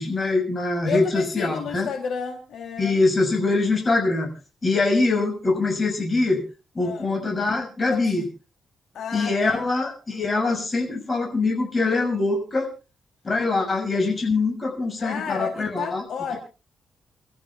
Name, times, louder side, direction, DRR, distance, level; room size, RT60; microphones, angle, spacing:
voice 1, 0.0-1.9 2.8-4.3 4.6-6.4 6.7-8.2 9.1-12.7 13.2-16.0, left 3 dB, 30° left, 3 dB, 6.4 m, -23 dB
voice 2, 0.9-3.0 6.8-7.1 7.8-8.1 8.9-9.6 15.0-16.3, left 7 dB, 75° left, 4 dB, 3.2 m, -31 dB
29.0 x 14.0 x 2.4 m, 0.33 s
cardioid pair, 130°, 0 cm